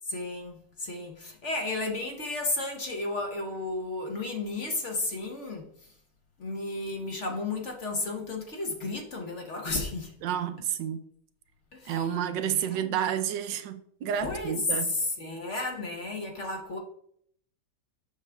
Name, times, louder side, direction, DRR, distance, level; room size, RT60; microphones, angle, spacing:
voice 1, 0.1-5.7 6.4-10.1 11.7-12.0 12.4-13.0 14.2-14.6 14.9-16.8, left 2 dB, 45° left, 1.2 m, -33 dB
voice 2, 10.2-11.0 11.8-15.0, right 9 dB, 80° right, 1.3 m, -30 dB
7.2 x 6.4 x 3.4 m
omnidirectional pair, 1.9 m